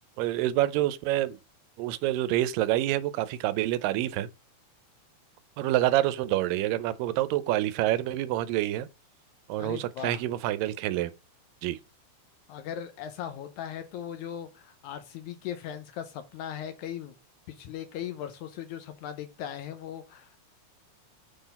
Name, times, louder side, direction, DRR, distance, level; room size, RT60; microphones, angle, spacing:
voice 1, 0.2-1.4 1.8-4.3 5.6-8.9 9.5-11.1 11.6-11.8, right 14 dB, 90° right, 2.3 m, -27 dB
voice 2, 9.6-10.2 12.5-17.1 17.5-20.4, left 9 dB, 75° left, 1.8 m, -38 dB
6.7 x 3.9 x 4.1 m
omnidirectional pair, 3.8 m